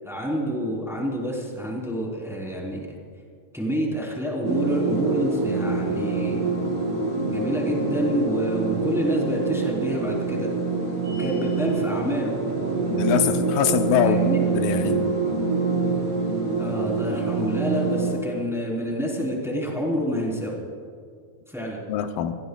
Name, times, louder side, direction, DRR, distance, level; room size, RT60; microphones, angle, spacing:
voice 1, 0.0-3.0 3.5-6.5 7.3-10.5 11.2-12.4 14.0-14.4 16.6-20.5 21.5-21.8, equal, ahead, -3 dB, 3.3 m, -28 dB
sound 1, 4.4-18.1, right 4 dB, 70° right, 6.2 m, -25 dB
sound 2, 11.0-11.9, right 2 dB, 40° right, 4.3 m, -39 dB
voice 2, 12.9-14.2 14.6-15.1 21.9-22.4, left 10 dB, 85° left, 7 dB, 2.5 m, -23 dB
27.5 x 19.0 x 2.4 m, 2.2 s
omnidirectional pair, 3.9 m